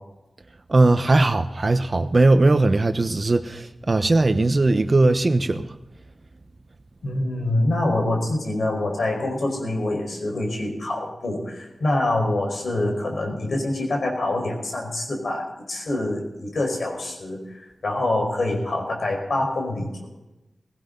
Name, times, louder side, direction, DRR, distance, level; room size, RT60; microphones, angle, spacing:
voice 1, 0.7-5.6, right 2 dB, 45° right, 1.0 m, -19 dB
voice 2, 7.0-20.1, left 2 dB, 75° left, 4.9 m, -25 dB
18.0 x 16.5 x 4.0 m
wide cardioid pair, 65°, 0 cm